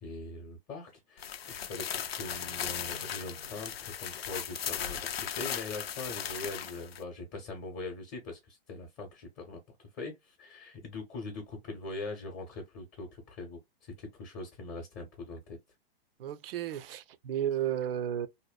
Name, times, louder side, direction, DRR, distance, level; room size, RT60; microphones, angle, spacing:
voice 1, 0.0-15.6, left 2 dB, 30° left, 0.7 m, -42 dB
sound 1, 1.2-7.0, left 9 dB, 85° left, 0.5 m, -37 dB
sound 2, 2.1-5.5, right 3 dB, 5° right, 0.4 m, -58 dB
voice 2, 16.2-18.3, right 10 dB, 70° right, 0.4 m, -33 dB
2.6 x 2.1 x 2.3 m
hypercardioid pair, 135°, 30 cm